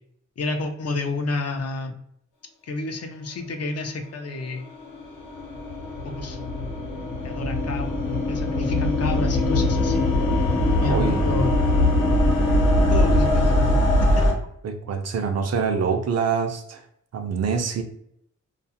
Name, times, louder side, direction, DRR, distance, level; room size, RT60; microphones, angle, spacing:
voice 1, 0.4-1.9 2.6-4.6 6.0-6.6 7.2-10.1 10.8-11.5 12.9-13.8, left 2 dB, 55° left, 5 dB, 0.5 m, -29 dB
sound 1, 4.6-14.3, left 1 dB, 80° left, 0.9 m, -21 dB
voice 2, 10.5-11.3 14.6-16.8 17.1-17.8, right 6 dB, 55° right, 5 dB, 0.4 m, -25 dB
2.4 x 2.3 x 2.7 m, 0.70 s
wide cardioid pair, 145°, 30 cm